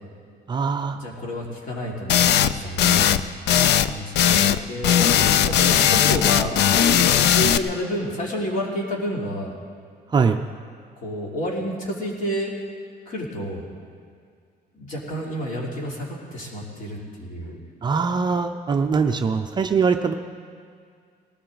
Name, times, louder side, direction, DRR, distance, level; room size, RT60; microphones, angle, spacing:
voice 1, 0.5-1.0 10.1-10.4 17.8-20.1, right 5 dB, 25° right, 5 dB, 0.5 m, -22 dB
voice 2, 1.0-3.4 3.8-9.5 11.0-12.5 13.1-13.6 14.7-17.6, equal, 50° left, -3 dB, 3.2 m, -30 dB
sound 1, 2.1-2.5 2.8-3.2 3.5-3.9 4.1-4.6 4.8-7.6, left 10 dB, 85° left, 0.5 m, -18 dB
19.0 x 17.5 x 3.9 m, 2.2 s
cardioid pair, 175°, 17 cm